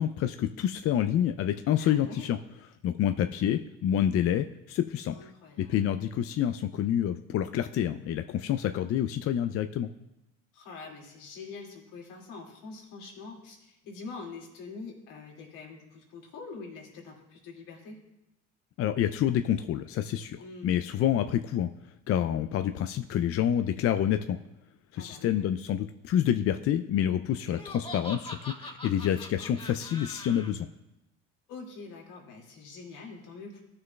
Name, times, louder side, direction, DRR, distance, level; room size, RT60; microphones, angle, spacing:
voice 1, 0.0-2.4 2.8-5.3 5.6-9.9 18.8-20.4 20.6-21.7 22.1-24.4 24.9-30.7, left 10 dB, 45° left, 9 dB, 0.4 m, -28 dB
voice 2, 1.8-2.3 5.1-5.8 10.5-18.0 20.4-20.7 24.9-25.5 31.5-33.6, left 4 dB, 75° left, -2 dB, 2.3 m, -45 dB
Laughter, 27.4-30.5, left 1 dB, 15° left, 1.5 m, -42 dB
14.5 x 6.4 x 2.3 m, 0.92 s
hypercardioid pair, 70°, 33 cm